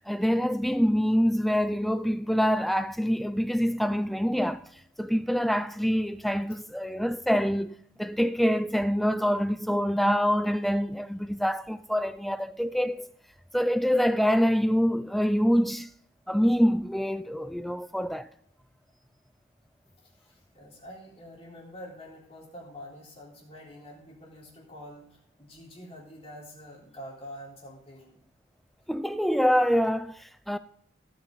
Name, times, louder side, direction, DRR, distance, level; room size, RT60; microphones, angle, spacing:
voice 1, 0.1-4.7 5.0-13.1 13.5-15.9 16.3-18.3 28.9-30.6, equal, ahead, 0.3 m, -25 dB
voice 2, 20.0-28.2, equal, 30° left, 3.9 m, -46 dB
17.5 x 8.8 x 4.0 m
head